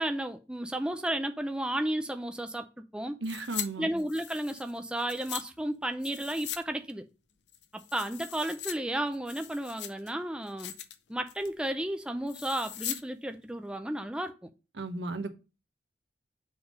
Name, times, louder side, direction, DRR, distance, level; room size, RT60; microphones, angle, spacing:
voice 1, 0.0-2.7 2.9-3.2 3.8-7.0 7.7-10.7 11.1-14.5, right 1 dB, 5° right, 0.5 m, -33 dB
sound 1, 3.2-3.7 4.0-5.4 6.0-6.6 6.9-7.0 7.5-8.7 9.1-10.1 10.5-11.0 11.3-11.6 12.3-13.0 13.3-13.4, left 11 dB, 85° left, 0.7 m, -40 dB
voice 2, 3.2-3.9 14.8-15.4, right 2 dB, 85° right, 1.0 m, -35 dB
7.1 x 3.5 x 4.9 m
head